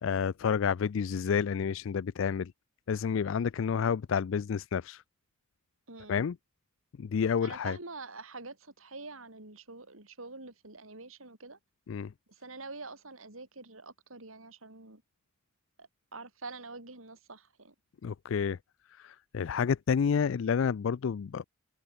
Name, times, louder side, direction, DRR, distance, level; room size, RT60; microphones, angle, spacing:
voice 1, 0.0-2.5 2.9-5.0 6.1-6.4 7.0-7.8 11.9-12.1 18.0-18.6 19.0-21.4, left 6 dB, 65° left, 0.4 m, -29 dB
voice 2, 5.9-6.2 7.4-11.6 12.3-15.0 15.8-17.7, right 3 dB, 80° right, 6.3 m, -46 dB
head